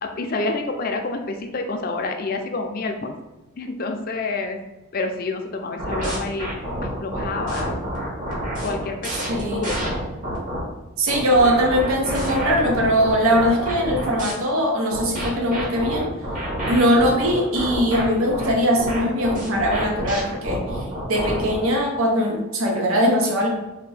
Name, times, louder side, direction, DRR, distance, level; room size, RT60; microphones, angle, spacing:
voice 1, 0.0-3.1 3.6-4.6 4.9-6.5 6.8-7.7 8.6-10.0, left 3 dB, 45° left, 4 dB, 0.4 m, -28 dB
sound 1, 5.8-10.6 11.1-14.3 14.9-21.6, equal, 40° right, 1.1 m, -28 dB
voice 2, 9.3-9.7 11.0-16.1 16.7-23.5, equal, 70° right, 0 dB, 0.7 m, -21 dB
4.0 x 2.6 x 3.3 m, 1.1 s
head